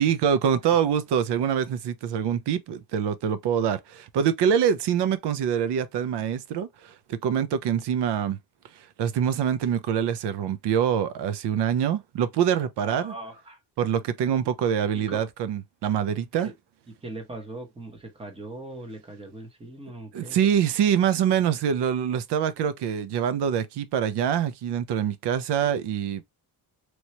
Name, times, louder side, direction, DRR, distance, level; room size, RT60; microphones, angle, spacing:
voice 1, 0.0-8.4 9.0-13.1 13.8-16.5 20.1-26.2, right 8 dB, 80° right, 0.6 m, -25 dB
voice 2, 12.8-13.6 14.9-15.2 16.4-16.5 17.0-20.4, right 2 dB, 15° right, 1.0 m, -40 dB
3.1 x 2.8 x 2.9 m
cardioid pair, 145°, 40 cm